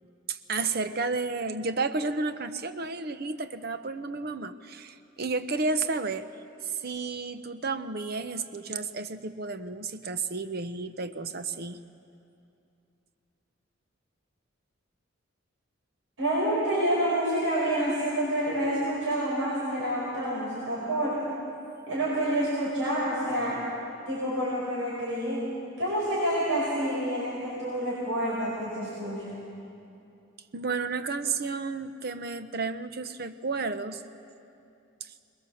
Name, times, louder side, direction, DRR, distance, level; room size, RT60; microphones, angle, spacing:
voice 1, 0.3-6.3 6.8-11.8 30.5-34.0, right 4 dB, 50° right, 10 dB, 0.8 m, -32 dB
voice 2, 16.2-21.3 21.8-23.6 24.1-25.5 25.8-29.4, right 1 dB, 90° right, -6 dB, 5.2 m, -28 dB
22.5 x 21.0 x 7.1 m, 2.6 s
head